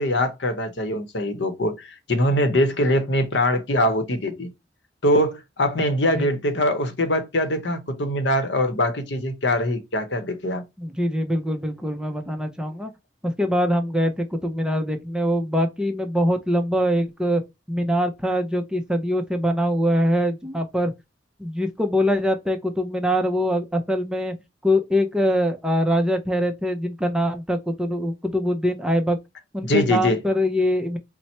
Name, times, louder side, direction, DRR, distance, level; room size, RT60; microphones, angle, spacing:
voice 1, 0.0-4.5 5.0-10.6 29.6-30.2, left 1 dB, 70° left, 0.9 m, -23 dB
voice 2, 10.8-12.9 13.2-17.4 17.7-20.9 21.4-24.3 24.6-29.2 29.5-31.0, equal, 5° right, 0.6 m, -23 dB
4.3 x 2.1 x 4.3 m
head